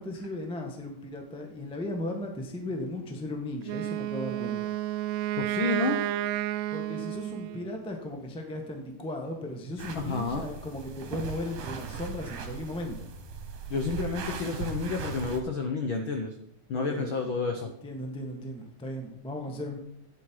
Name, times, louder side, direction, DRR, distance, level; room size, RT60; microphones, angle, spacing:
voice 1, 0.0-4.7 6.7-13.1 16.7-17.3 17.6-19.8, left 1 dB, 5° left, 2 dB, 0.4 m, -36 dB
Wind instrument woodwind instrument, 3.6-7.8, right 13 dB, 85° right, 1.6 m, -31 dB
voice 2, 5.4-6.0 9.9-10.5 13.7-16.3 16.7-17.7, left 4 dB, 75° left, 4 dB, 1.1 m, -30 dB
sound 1, 9.8-15.4, right 6 dB, 65° right, 2.6 m, -38 dB
12.5 x 9.1 x 4.7 m, 0.73 s
omnidirectional pair, 3.7 m